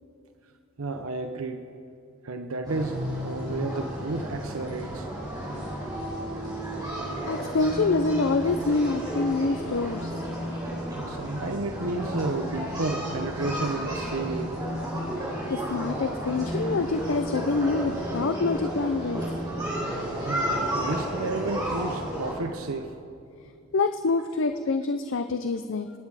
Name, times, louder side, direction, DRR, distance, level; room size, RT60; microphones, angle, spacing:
voice 1, 0.8-1.6 2.2-5.1 7.7-7.8 10.9-14.7 18.6-18.7 20.2-22.9, right 3 dB, 85° right, 7 dB, 0.8 m, -32 dB
sound 1, 2.6-22.3, equal, 20° right, 4.1 m, -32 dB
voice 2, 7.3-10.2 15.2-19.2 23.7-25.9, left 3 dB, 65° left, 8 dB, 0.5 m, -26 dB
26.0 x 9.6 x 4.9 m, 2.5 s
head